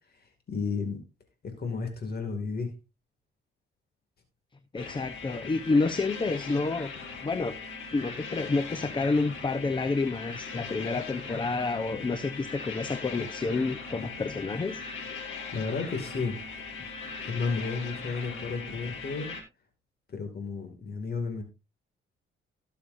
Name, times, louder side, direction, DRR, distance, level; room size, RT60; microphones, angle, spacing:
voice 1, 0.5-1.0 1.4-2.7 15.5-16.4 17.2-19.3 20.1-21.4, left 4 dB, 50° left, 5 dB, 2.4 m, -32 dB
voice 2, 4.7-6.9 7.2-7.6 7.9-14.8, left 3 dB, 25° left, 11 dB, 0.9 m, -29 dB
sound 1, 4.8-19.4, left 5 dB, 80° left, 4.7 m, -40 dB
18.0 x 6.8 x 2.6 m, 0.28 s
cardioid pair, 90°, 20 cm